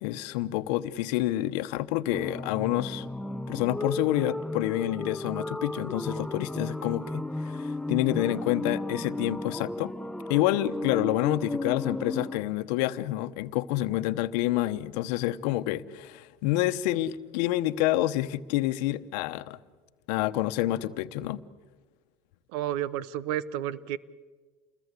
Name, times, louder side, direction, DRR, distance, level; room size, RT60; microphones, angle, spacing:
voice 1, 0.0-3.1 3.5-9.9 10.3-19.6 20.1-21.4, left 15 dB, 80° left, 1.0 m, -28 dB
sound 1, 2.1-12.4, left 2 dB, 5° left, 0.7 m, -34 dB
voice 2, 22.5-24.0, right 12 dB, 80° right, 1.1 m, -31 dB
29.0 x 21.0 x 8.3 m
supercardioid pair, 90°, 21 cm